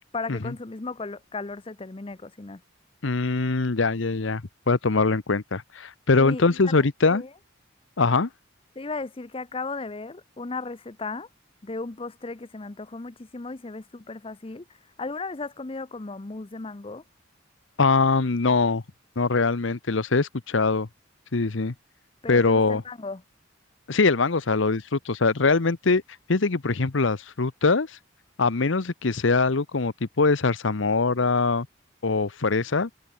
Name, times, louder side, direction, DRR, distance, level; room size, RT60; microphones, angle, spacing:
voice 1, 0.1-2.6 6.1-6.7 7.1-7.3 8.8-11.3 11.6-14.6 15.0-17.0 22.2-23.2, left 3 dB, 30° left, 0.6 m, -35 dB
voice 2, 3.0-4.4 4.7-7.2 8.0-8.3 17.8-18.8 19.2-20.9 21.3-21.7 22.3-22.8 23.9-26.0 26.3-28.0 28.4-31.7 32.0-32.9, left 3 dB, 75° left, 0.9 m, -22 dB
head